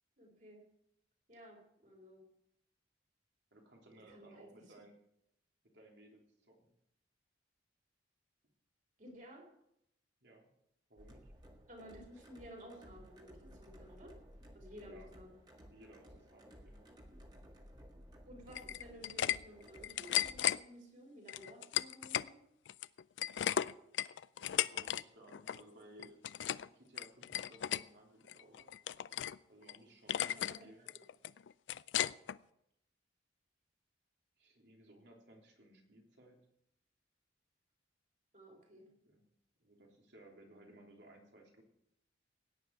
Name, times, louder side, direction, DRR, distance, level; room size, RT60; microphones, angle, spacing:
voice 1, 0.2-0.6 1.3-2.2 4.1-4.8 9.0-9.5 11.7-14.2 14.5-15.4 18.3-22.4 30.3-30.9 38.3-38.9, equal, 45° right, 1 dB, 4.0 m, -54 dB
voice 2, 3.5-4.9 5.7-6.7 10.2-10.5 10.9-11.3 14.7-15.1 15.7-16.9 24.3-26.2 26.7-28.7 29.5-30.9 34.4-36.4 38.7-39.2 39.6-41.6, right 1 dB, 70° right, 0 dB, 3.4 m, -60 dB
sound 1, 11.0-20.4, equal, 25° right, 1.8 m, -57 dB
sound 2, 18.5-19.4 19.7-20.6 21.3-22.3 22.7-25.0 25.3-25.6 26.0-26.7 27.0-27.8 28.3-29.4 29.7-29.8 30.1-30.6 30.9-32.4, left 11 dB, 80° left, 0.4 m, -35 dB
17.0 x 9.8 x 4.7 m, 0.78 s
head